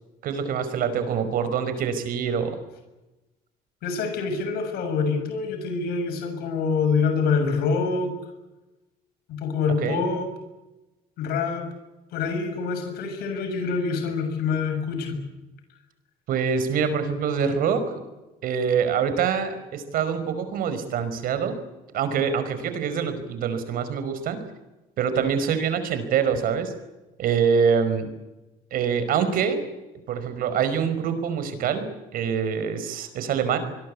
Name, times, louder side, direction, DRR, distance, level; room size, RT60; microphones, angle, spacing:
voice 1, 0.2-2.5 9.8-10.0 16.3-18.0 18.4-21.6 21.9-24.4 25.0-26.7 27.2-28.1 28.7-29.6 30.1-31.8 32.1-33.6, right 7 dB, 65° right, 11 dB, 5.1 m, -25 dB
voice 2, 3.8-8.1 9.3-10.3 11.2-11.7 12.1-15.2, left 5 dB, 85° left, 6 dB, 7.1 m, -26 dB
26.5 x 21.5 x 8.5 m, 1.0 s
cardioid pair, 140°, 16 cm